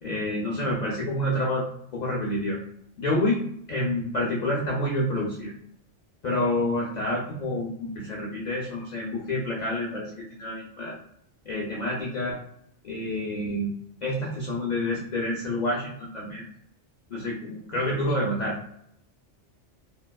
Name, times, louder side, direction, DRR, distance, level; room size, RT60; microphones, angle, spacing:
voice 1, 0.0-2.6 3.0-3.4 3.7-5.5 6.2-10.9 11.5-12.4 12.8-13.7 14.0-16.4 17.1-18.6, left 1 dB, 60° left, -3 dB, 0.4 m, -28 dB
2.8 x 2.1 x 2.2 m, 0.71 s
omnidirectional pair, 1.2 m